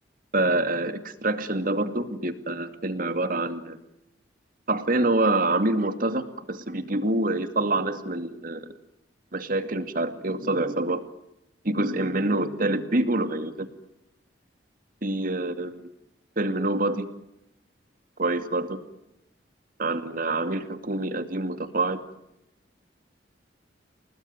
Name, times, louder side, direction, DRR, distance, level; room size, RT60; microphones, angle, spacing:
voice 1, 0.3-3.8 4.7-8.7 9.3-11.0 11.6-13.7 15.0-15.9 16.4-17.1 18.2-18.8 19.8-22.0, right 2 dB, 50° right, 10 dB, 2.4 m, -26 dB
29.5 x 20.0 x 9.5 m, 0.85 s
head